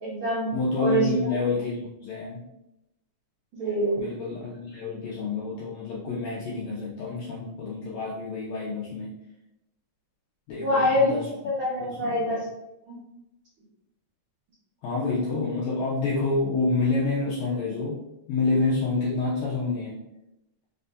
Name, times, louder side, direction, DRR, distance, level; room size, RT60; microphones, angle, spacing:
voice 1, 0.0-0.5 0.8-1.1 3.5-4.0 10.6-11.2 11.4-12.4 12.8-12.9, equal, 60° right, -8 dB, 1.5 m, -25 dB
voice 2, 0.5-2.4 4.0-9.1 10.5-11.5 12.0-12.4 14.8-18.0 18.3-20.0, left 3 dB, 75° left, -6 dB, 1.6 m, -28 dB
5.1 x 2.7 x 3.3 m, 0.89 s
omnidirectional pair, 3.9 m